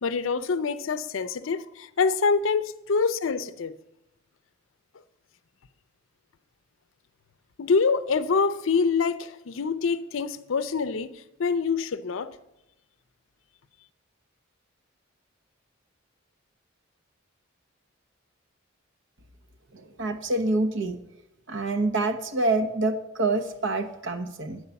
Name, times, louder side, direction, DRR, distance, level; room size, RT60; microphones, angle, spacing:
voice 1, 0.0-3.7 7.6-12.4, left 5 dB, 70° left, 0.5 m, -25 dB
voice 2, 19.7-21.0 21.5-24.6, right 2 dB, 65° right, 0.9 m, -26 dB
9.6 x 4.8 x 6.9 m
head